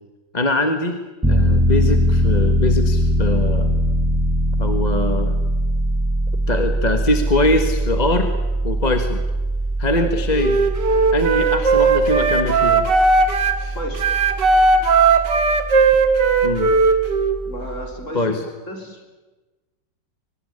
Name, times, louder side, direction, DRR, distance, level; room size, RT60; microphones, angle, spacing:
voice 1, 0.3-1.0 1.3-3.8 4.6-5.4 6.5-8.3 8.6-9.2 9.8-10.5 11.1-12.8 16.4-16.7 18.1-18.4, left 2 dB, 25° left, 6 dB, 1.5 m, -22 dB
Piano, 1.2-17.9, equal, 10° right, 1.8 m, -22 dB
Wind instrument woodwind instrument, 10.3-13.6 14.0-17.4, right 4 dB, 75° right, 2.4 m, -17 dB
voice 2, 13.7-14.1 17.4-18.4 18.7-19.1, equal, 40° left, 2 dB, 4.6 m, -32 dB
24.0 x 18.5 x 9.9 m, 1.2 s
omnidirectional pair, 2.0 m